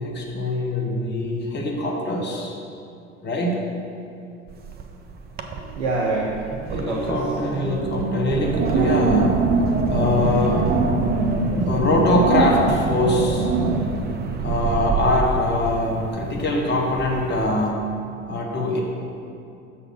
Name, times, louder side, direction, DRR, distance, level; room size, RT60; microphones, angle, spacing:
voice 1, 0.0-2.5 3.2-3.6 6.7-9.4 9.9-10.7 11.7-13.5 14.4-17.9 18.3-18.8, left 1 dB, 25° left, -1 dB, 1.4 m, -23 dB
Wind, 4.5-5.0 5.3-5.8 6.2-17.7, right 4 dB, 25° right, 0.6 m, -24 dB
voice 2, 5.6-7.2 11.1-11.7 14.4-14.6, right 3 dB, 65° right, -3 dB, 0.9 m, -28 dB
6.5 x 4.2 x 6.4 m, 2.6 s
figure-of-eight pair, 70°, 39 cm